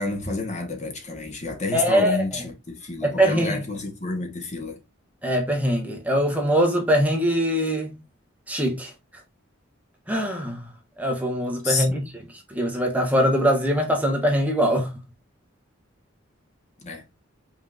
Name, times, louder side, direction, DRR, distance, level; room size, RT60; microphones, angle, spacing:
voice 1, 0.0-4.8 11.6-12.0 16.8-17.0, left 3 dB, 35° left, 1.3 m, -29 dB
voice 2, 1.7-2.2 3.0-3.6 5.2-8.0 8.5-8.9 10.1-10.6 11.0-12.1 12.5-14.9, equal, 5° right, 1.2 m, -22 dB
5.6 x 3.8 x 2.5 m
head